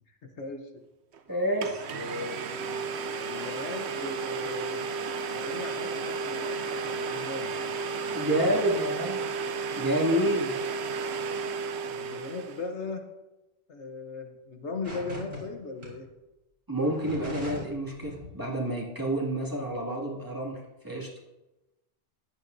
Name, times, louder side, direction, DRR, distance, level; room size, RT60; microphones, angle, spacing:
voice 1, 0.1-0.8 1.9-2.9 3.2-4.8 5.3-7.6 8.0-8.2 11.8-13.0 13.7-16.1, left 3 dB, 70° left, 4 dB, 1.3 m, -38 dB
Domestic sounds home sounds, 1.1-1.2 1.6-12.7, right 4 dB, 70° right, 0.9 m, -33 dB
voice 2, 1.3-1.9 8.1-9.3 9.8-10.5 16.7-20.6 20.8-21.1, right 1 dB, 15° right, -4 dB, 2.3 m, -28 dB
sound 1, 14.8-15.4 15.8-15.9 16.8-17.7 18.0-18.3, equal, 55° right, 4.4 m, -38 dB
14.5 x 11.0 x 2.7 m, 1.0 s
omnidirectional pair, 1.2 m